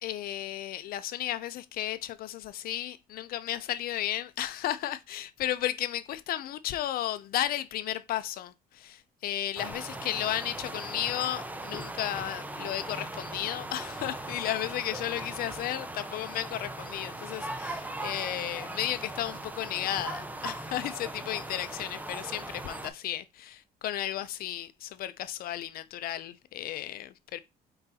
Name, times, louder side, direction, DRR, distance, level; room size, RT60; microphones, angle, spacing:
voice 1, 0.0-27.4, left 12 dB, 60° left, 0.4 m, -34 dB
sound 1, 9.6-22.9, right 2 dB, 10° right, 0.5 m, -39 dB
4.7 x 3.8 x 2.7 m
cardioid pair, 110°, 17 cm